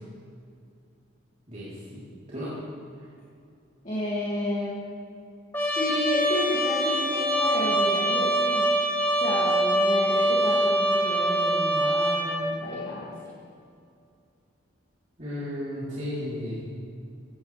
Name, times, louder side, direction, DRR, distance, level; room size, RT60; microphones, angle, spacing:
voice 1, 1.5-2.0 2.3-2.5 15.2-16.6, left 1 dB, 35° right, -12 dB, 4.1 m, -34 dB
voice 2, 3.8-4.8 5.8-8.7 9.2-13.1, left 1 dB, 35° left, -8 dB, 2.6 m, -31 dB
Trumpet, 5.5-12.4, right 1 dB, 10° left, 1.7 m, -24 dB
16.5 x 16.0 x 3.6 m, 2.4 s
head